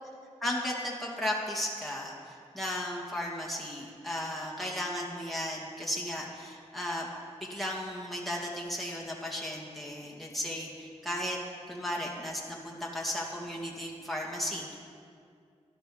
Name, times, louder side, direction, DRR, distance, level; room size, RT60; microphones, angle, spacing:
voice 1, 0.4-7.1 7.4-11.4 11.7-14.8, left 1 dB, ahead, -3 dB, 2.4 m, -35 dB
12.5 x 11.5 x 5.1 m, 2.2 s
cardioid pair, 55°, 12 cm